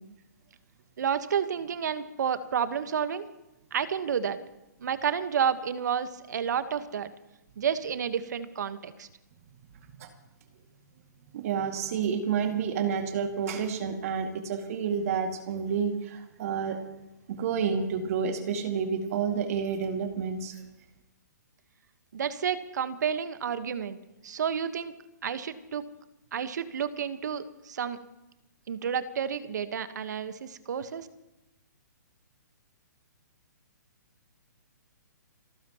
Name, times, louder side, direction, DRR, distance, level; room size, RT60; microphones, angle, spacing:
voice 1, 1.0-3.3 3.7-4.4 4.8-7.1 7.6-9.1 22.1-24.0 24.2-24.9 25.2-25.9 26.3-28.0 28.7-31.1, right 7 dB, 65° right, 11 dB, 1.4 m, -30 dB
voice 2, 11.3-16.8 17.3-20.6, right 6 dB, 50° right, 4 dB, 2.3 m, -29 dB
29.5 x 14.5 x 3.1 m, 0.94 s
hypercardioid pair, 140°, 10 cm